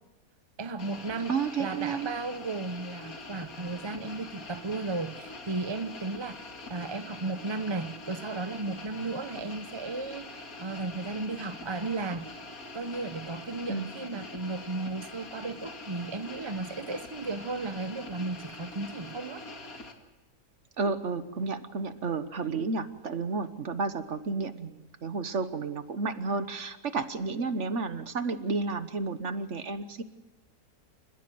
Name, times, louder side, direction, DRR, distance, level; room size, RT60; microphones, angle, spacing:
voice 1, 0.6-12.3 12.7-19.4, right 3 dB, 25° right, 0.6 m, -35 dB
sound 1, 0.8-19.9, left 2 dB, 60° left, 2.6 m, -44 dB
voice 2, 1.3-2.1 13.7-13.9 20.8-30.0, right 4 dB, 50° right, 1.4 m, -31 dB
29.0 x 15.5 x 7.8 m
omnidirectional pair, 1.7 m